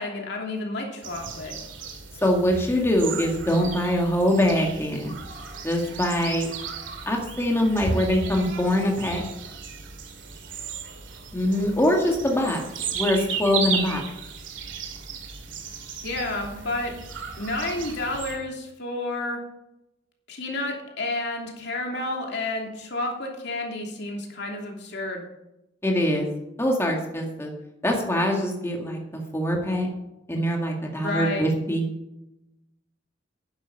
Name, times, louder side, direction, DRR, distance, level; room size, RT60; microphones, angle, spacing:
voice 1, 0.0-1.5 16.0-16.9 17.4-19.4 20.3-25.2 30.9-31.5, left 2 dB, 65° left, 1 dB, 2.9 m, -30 dB
sound 1, 1.0-18.4, right 5 dB, 80° right, 2.3 m, -35 dB
voice 2, 2.2-5.1 5.6-6.5 7.1-9.2 11.3-12.6 12.9-14.0 25.8-26.3 26.6-27.5 27.8-29.9 30.3-31.8, left 1 dB, 15° left, 0 dB, 2.0 m, -23 dB
11.5 x 9.8 x 5.5 m, 0.90 s
head